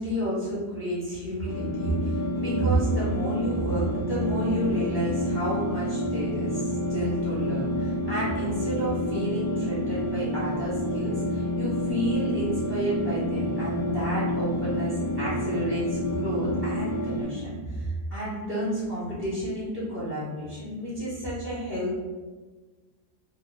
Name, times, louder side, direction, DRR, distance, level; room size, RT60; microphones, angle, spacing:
voice 1, 0.0-22.0, right 1 dB, 20° left, -10 dB, 0.6 m, -30 dB
sound 1, 1.5-17.2, left 1 dB, 80° left, 1.3 m, -29 dB
3.2 x 2.0 x 3.8 m, 1.4 s
omnidirectional pair, 1.8 m